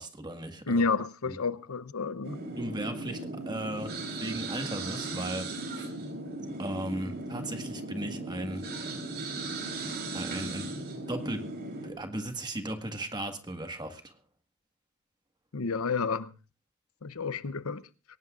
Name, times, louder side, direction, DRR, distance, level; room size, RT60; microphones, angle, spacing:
voice 1, 0.0-0.8 1.3-1.4 2.6-5.5 5.8-5.9 6.6-8.7 10.1-10.7 11.1-11.5 11.8-14.1, right 1 dB, 20° right, 1.7 m, -36 dB
voice 2, 0.7-2.4 15.5-16.3 17.0-17.8, left 4 dB, 80° left, 0.8 m, -30 dB
sound 1, 2.2-11.9, right 2 dB, 45° right, 3.6 m, -37 dB
22.5 x 18.5 x 2.5 m
head